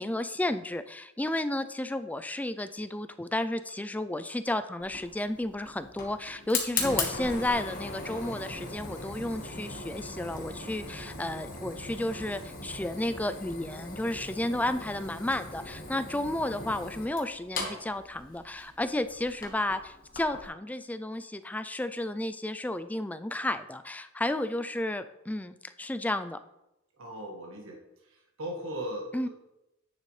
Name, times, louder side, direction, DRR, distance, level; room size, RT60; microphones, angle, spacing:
voice 1, 0.0-26.4 29.1-29.3, left 1 dB, 10° left, 11 dB, 0.3 m, -32 dB
Fire, 4.8-20.5, left 3 dB, 45° left, 1.4 m, -39 dB
voice 2, 27.0-29.3, right 1 dB, 90° right, 0 dB, 1.6 m, -38 dB
9.7 x 6.7 x 3.2 m, 0.89 s
head